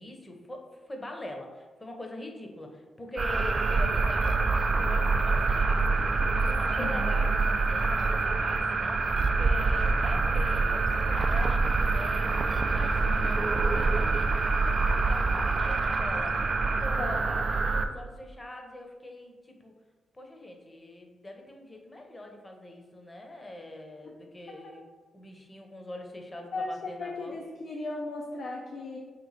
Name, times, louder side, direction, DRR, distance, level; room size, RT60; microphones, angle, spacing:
voice 1, 0.0-19.7 20.1-24.8 25.1-27.4, left 1 dB, 25° left, 2 dB, 0.8 m, -43 dB
sound 1, 3.2-17.9, right 3 dB, 45° right, 0.3 m, -26 dB
voice 2, 13.0-13.5 17.0-17.2 24.5-24.6 26.5-29.0, left 3 dB, 75° left, -2 dB, 0.6 m, -36 dB
3.3 x 3.1 x 4.1 m, 1.4 s
cardioid pair, 60°, 0 cm